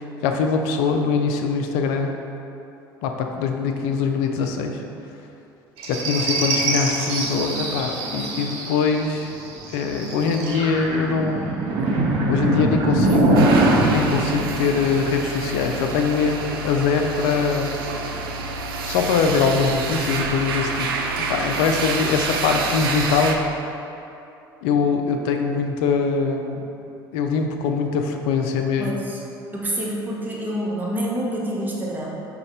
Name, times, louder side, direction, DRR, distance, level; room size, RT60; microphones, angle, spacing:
voice 1, 0.0-2.1 3.0-4.8 5.9-9.3 9.7-11.6 12.3-17.8 18.9-20.9 21.2-23.4 24.6-26.7 27.1-29.0, left 5 dB, 60° left, 4 dB, 0.4 m, -22 dB
sound 1, 5.8-15.5 17.2-18.1 19.1-20.3, right 2 dB, 55° right, 0.7 m, -24 dB
sound 2, 13.4-23.4, right 3 dB, 75° right, 0.4 m, -28 dB
voice 2, 28.8-29.2 29.5-32.1, right 1 dB, 15° right, -4 dB, 0.9 m, -27 dB
5.2 x 2.4 x 4.0 m, 2.8 s
figure-of-eight pair, 65°, 12 cm